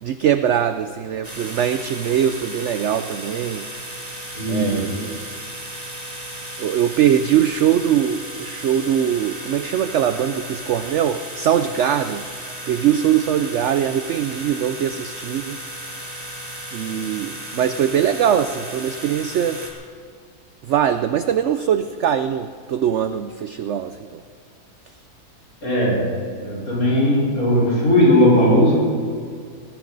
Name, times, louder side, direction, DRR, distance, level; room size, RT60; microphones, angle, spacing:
voice 1, 0.0-3.7 4.5-5.2 6.6-15.6 16.7-19.6 20.6-24.2, right 9 dB, 70° right, 10 dB, 0.7 m, -22 dB
sound 1, 1.2-19.7, right 1 dB, 25° right, 2.2 m, -35 dB
voice 2, 4.3-4.9 25.6-26.1 26.4-28.7, left 1 dB, 60° left, -6 dB, 5.0 m, -17 dB
18.5 x 15.5 x 4.0 m, 2.1 s
omnidirectional pair, 1.7 m